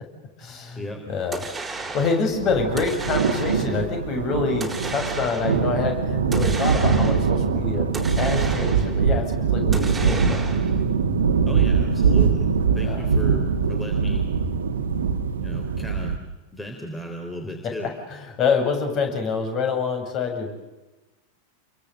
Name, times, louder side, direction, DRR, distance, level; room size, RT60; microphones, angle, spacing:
voice 1, 0.4-1.4 1.9-7.9 8.2-10.5 12.8-13.0 18.1-20.5, left 5 dB, 35° left, 4 dB, 7.5 m, -26 dB
sound 1, 1.3-2.3 2.8-3.8 4.6-5.7 6.3-7.4 7.9-9.0 9.7-10.8, right 3 dB, 10° right, 4.2 m, -34 dB
sound 2, 2.3-16.2, right 5 dB, 65° right, 1.9 m, -22 dB
voice 2, 11.5-12.5 12.7-14.3 15.4-16.2 16.5-17.9, left 1 dB, 10° left, 4 dB, 3.7 m, -35 dB
29.5 x 23.0 x 8.2 m, 1.1 s
figure-of-eight pair, 90°, 0 cm